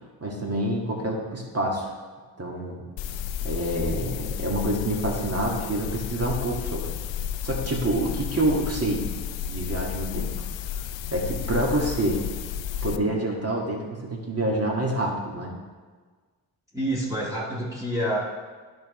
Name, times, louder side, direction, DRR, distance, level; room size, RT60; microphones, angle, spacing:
voice 1, 0.2-1.9 2.4-2.8 3.4-6.9 7.4-9.0 9.5-10.3 11.1-12.2 12.8-15.5, right 1 dB, 30° right, -2 dB, 2.2 m, -27 dB
sound 1, 3.0-13.0, left 9 dB, 70° left, 0.5 m, -32 dB
voice 2, 16.7-18.2, right 1 dB, 5° right, -9 dB, 1.9 m, -27 dB
10.5 x 5.6 x 3.3 m, 1.4 s
cardioid pair, 55°, 48 cm